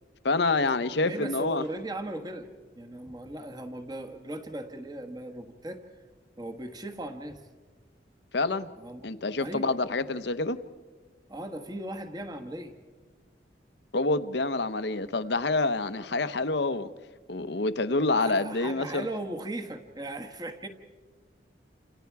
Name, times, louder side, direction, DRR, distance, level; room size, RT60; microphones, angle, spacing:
voice 1, 0.2-1.6 8.3-8.7 9.0-10.6 13.9-16.9 17.3-19.1, left 3 dB, 65° left, 0.9 m, -27 dB
voice 2, 1.0-2.5 2.7-5.8 6.4-7.4 8.8-9.1 9.4-9.8 11.3-12.7 18.1-20.7, right 1 dB, 20° right, 1.5 m, -38 dB
29.5 x 27.5 x 4.8 m
head